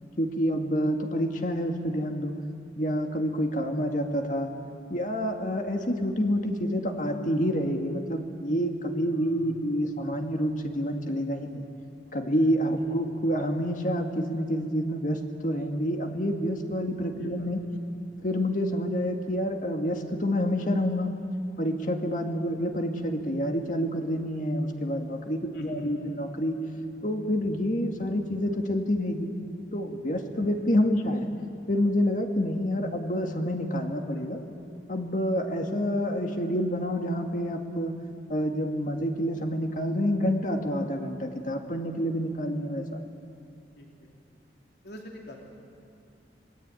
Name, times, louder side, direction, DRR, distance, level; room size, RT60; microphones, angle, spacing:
voice 1, 0.2-2.3 2.8-4.5 4.9-11.6 12.1-17.6 18.2-21.1 21.6-26.6 27.0-29.3 29.7-31.3 31.7-34.4 34.9-38.0 38.3-43.0, equal, 45° left, 4 dB, 2.1 m, -28 dB
voice 2, 9.1-9.7 12.8-13.1 17.1-17.5 22.4-22.6 25.5-25.9 43.8-44.2 44.8-45.4, equal, 65° left, 0 dB, 3.2 m, -45 dB
26.5 x 20.0 x 9.1 m, 2.5 s
head